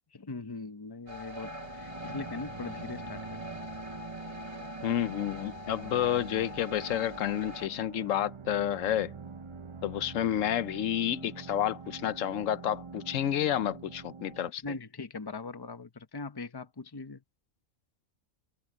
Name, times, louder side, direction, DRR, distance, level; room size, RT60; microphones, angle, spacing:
voice 1, 0.1-3.6 14.6-17.2, left 3 dB, 20° left, 0.9 m, -41 dB
sound 1, 1.1-7.7, left 2 dB, 60° right, 3.2 m, -44 dB
sound 2, 1.4-14.5, right 5 dB, 35° right, 0.5 m, -45 dB
voice 2, 4.8-9.1 9.8-14.6, left 11 dB, 85° left, 1.1 m, -30 dB
open air
omnidirectional pair, 1.3 m